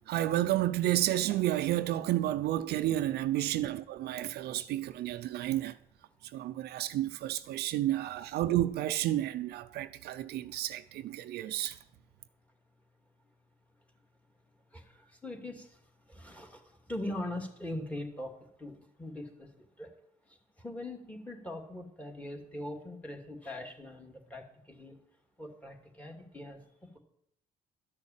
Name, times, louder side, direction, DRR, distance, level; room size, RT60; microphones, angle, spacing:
voice 1, 0.1-5.7 6.3-11.8, right 14 dB, 70° right, 0.6 m, -31 dB
voice 2, 14.7-15.8 16.1-19.9 20.3-25.0 25.4-27.0, left 1 dB, 10° left, 2.4 m, -42 dB
12.5 x 6.4 x 7.2 m
cardioid pair, 110°, 17 cm